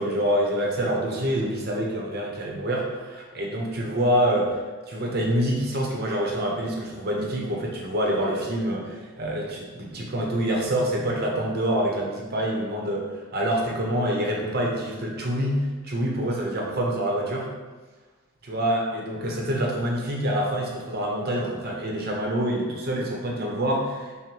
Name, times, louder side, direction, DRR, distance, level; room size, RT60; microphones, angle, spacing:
voice 1, 0.0-4.6 4.9-17.5 18.4-24.2, right 1 dB, 45° right, -1 dB, 0.7 m, -26 dB
5.8 x 2.1 x 3.2 m, 1.3 s
head